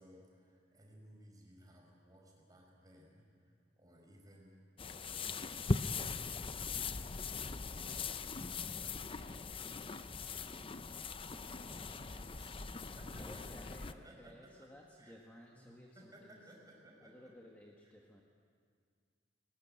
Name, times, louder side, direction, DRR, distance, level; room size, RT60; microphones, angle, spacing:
voice 1, 0.0-3.5 3.8-4.7 5.0-6.2 6.6-8.0 8.4-13.4 13.9-14.7 15.0-15.1 15.6-17.3, equal, 20° right, -1 dB, 5.5 m, -60 dB
sound 1, 4.8-13.9, left 4 dB, 30° left, 0.6 m, -40 dB
voice 2, 13.1-16.5 17.0-18.2, left 1 dB, 10° left, -2 dB, 1.6 m, -57 dB
20.5 x 19.5 x 9.1 m, 2.1 s
head